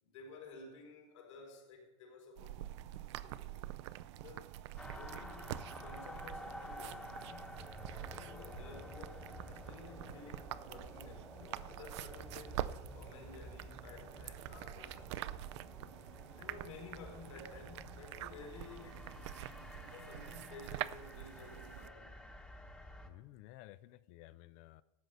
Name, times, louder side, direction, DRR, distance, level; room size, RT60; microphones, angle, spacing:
voice 1, 0.0-2.9 3.2-3.6 4.2-4.6 4.9-15.1 15.7-15.9 16.2-19.1 19.8-22.3, left 4 dB, 80° left, 1 dB, 4.9 m, -54 dB
sound 1, 2.4-21.9, right 14 dB, 70° right, 0.5 m, -46 dB
sound 2, 4.8-23.1, left 1 dB, 5° left, 1.0 m, -51 dB
voice 2, 23.0-24.8, left 16 dB, 50° left, 16 dB, 0.4 m, -55 dB
13.5 x 7.8 x 5.6 m, 1.0 s
supercardioid pair, 135°, 15 cm